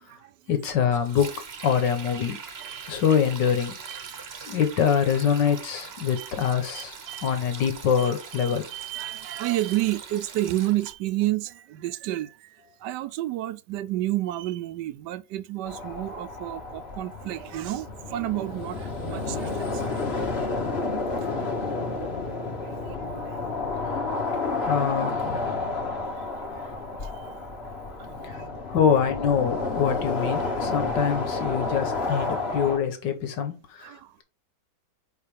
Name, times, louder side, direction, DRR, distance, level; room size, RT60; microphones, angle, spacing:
voice 1, 0.5-1.4 1.6-2.4 2.9-3.7 4.4-7.0 7.2-8.6 24.4-25.7 28.2-28.4 28.7-34.2, left 7 dB, 75° left, 1.9 m, -25 dB
Sink (filling or washing), 0.9-10.9, right 5 dB, 40° right, 1.0 m, -42 dB
voice 2, 2.6-3.0 3.9-4.3 6.2-7.4 8.0-20.1 21.2-21.3 22.6-23.4 26.2-26.3 27.0-27.4 28.0-28.6 31.5-31.6 33.8-34.2, right 15 dB, 75° right, 1.2 m, -31 dB
sound 1, 15.6-32.8, left 3 dB, 35° left, 1.5 m, -30 dB
4.9 x 4.7 x 5.2 m
omnidirectional pair, 2.0 m